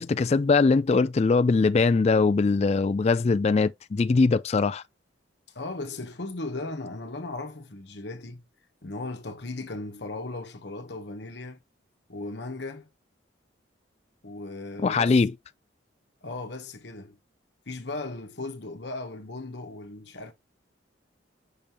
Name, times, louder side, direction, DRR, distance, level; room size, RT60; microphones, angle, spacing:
voice 1, 0.0-4.8 14.8-15.3, left 4 dB, 35° left, 0.3 m, -21 dB
voice 2, 5.5-8.4 8.8-11.6 12.1-12.9 14.2-15.2 16.2-17.2 17.7-20.3, left 2 dB, 60° left, 1.1 m, -37 dB
6.8 x 5.2 x 2.9 m
head